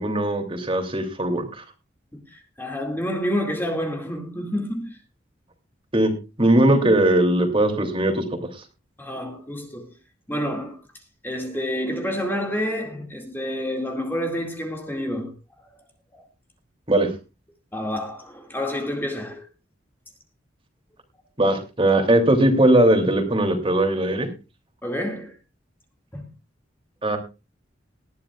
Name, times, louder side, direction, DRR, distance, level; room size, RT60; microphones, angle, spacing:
voice 1, 0.0-1.6 5.9-6.1 6.4-8.4 16.9-17.1 21.4-24.3 27.0-27.2, right 1 dB, 30° right, 2.9 m, -19 dB
voice 2, 2.1-5.0 9.0-9.9 10.3-10.8 11.2-15.3 16.1-16.2 17.7-19.5 24.8-25.4 26.1-26.2, equal, 10° left, 2.2 m, -28 dB
19.5 x 12.5 x 2.4 m
head